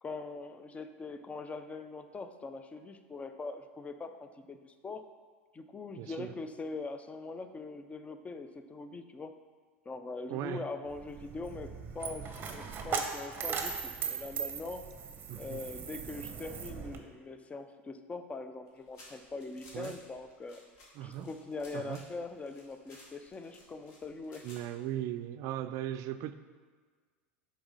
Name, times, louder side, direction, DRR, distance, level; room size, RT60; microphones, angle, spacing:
voice 1, 0.0-5.1 5.5-9.4 9.9-14.8 15.3-20.6 21.0-24.5, left 3 dB, 20° left, 9 dB, 0.5 m, -42 dB
voice 2, 6.0-6.3 10.3-10.7 15.3-15.6 19.7-20.0 21.0-21.3 21.7-22.0 24.4-26.3, right 12 dB, 50° right, 11 dB, 0.4 m, -38 dB
Coin (dropping), 10.9-17.0, right 6 dB, 30° right, 0.8 m, -39 dB
sound 1, 18.7-24.9, left 2 dB, 50° left, 2.0 m, -56 dB
6.2 x 4.1 x 4.8 m, 1.5 s
hypercardioid pair, 90°, 7 cm